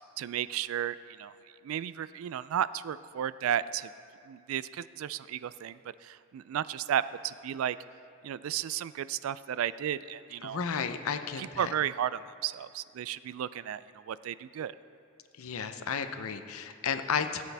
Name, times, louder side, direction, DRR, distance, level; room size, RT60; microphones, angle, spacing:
voice 1, 0.2-1.3 1.6-3.9 4.2-7.8 8.2-10.6 11.4-14.7, right 10 dB, 75° right, 17 dB, 0.3 m, -33 dB
voice 2, 10.4-11.7 15.4-17.4, left 6 dB, 85° left, 9 dB, 0.6 m, -33 dB
17.0 x 8.3 x 3.4 m, 2.4 s
head